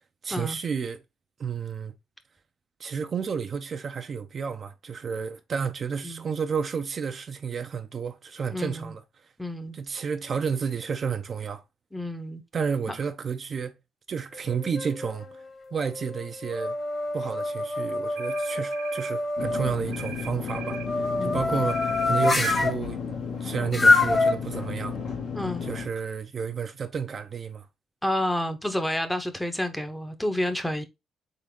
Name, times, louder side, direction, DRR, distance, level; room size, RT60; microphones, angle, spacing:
voice 1, 0.2-1.0 1.4-1.9 2.8-9.0 9.7-11.6 12.5-13.7 14.1-15.3 15.7-16.8 17.1-20.8 21.2-23.0 23.4-25.0 25.6-27.7, right 6 dB, 45° right, 0.6 m, -31 dB
voice 2, 8.5-8.9 9.4-9.8 11.9-12.4 21.0-21.5 25.3-25.7 28.0-30.9, left 1 dB, 5° left, 0.8 m, -30 dB
sound 1, 14.3-15.2 15.8-19.7 20.6-22.8 23.7-24.3, left 2 dB, 35° left, 1.2 m, -26 dB
sound 2, 18.1-19.1 19.9-20.9 21.7-22.7, right 8 dB, 90° right, 1.1 m, -40 dB
sound 3, 19.4-25.9, left 5 dB, 75° left, 1.4 m, -33 dB
3.9 x 3.7 x 3.6 m
cardioid pair, 90°, 0 cm